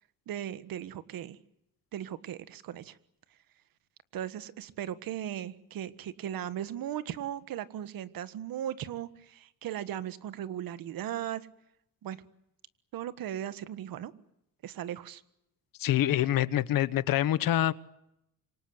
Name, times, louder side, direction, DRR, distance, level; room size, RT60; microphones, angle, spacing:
voice 1, 0.3-1.4 1.9-3.0 4.1-11.5 12.0-12.2 12.9-14.1 14.6-15.2, right 11 dB, 75° right, 1.6 m, -37 dB
voice 2, 15.8-17.7, left 12 dB, 75° left, 1.1 m, -26 dB
27.0 x 25.0 x 7.9 m
cardioid pair, 165°, 35 cm